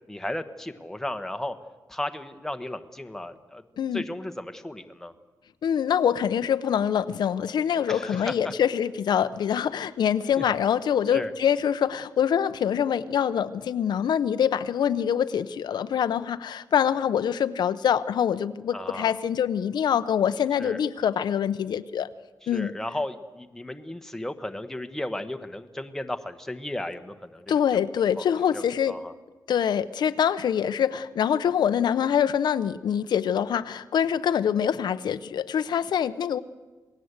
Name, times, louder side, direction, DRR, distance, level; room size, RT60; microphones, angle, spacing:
voice 1, 0.1-1.5 1.9-3.6 3.9-5.1 7.9-8.5 10.4-10.5 11.1-11.3 18.7-19.2 20.6-20.8 22.4-27.8 28.2-29.1, left 1 dB, 5° left, 7 dB, 1.1 m, -35 dB
voice 2, 5.6-22.1 22.5-22.7 27.5-29.0 29.5-36.4, left 8 dB, 85° left, 12 dB, 0.8 m, -25 dB
27.5 x 19.5 x 8.1 m, 1.2 s
wide cardioid pair, 175°, 7 cm